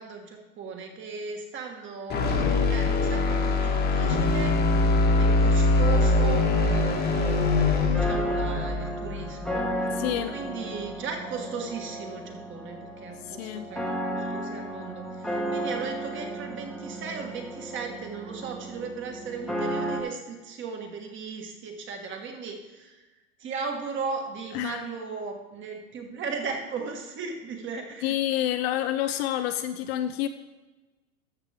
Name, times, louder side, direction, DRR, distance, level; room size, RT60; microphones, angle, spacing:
voice 1, 0.0-4.6 5.2-9.7 10.3-23.0 23.4-28.1, right 5 dB, 30° right, 3 dB, 1.6 m, -37 dB
sound 1, 2.1-10.2, left 3 dB, 25° left, 1.3 m, -23 dB
sound 2, 6.7-20.0, right 1 dB, ahead, 1.2 m, -34 dB
voice 2, 9.9-10.3 13.3-13.7 24.5-24.8 28.0-30.3, left 12 dB, 50° left, 9 dB, 0.6 m, -28 dB
13.5 x 6.4 x 3.5 m, 1.2 s
hypercardioid pair, 120°, 41 cm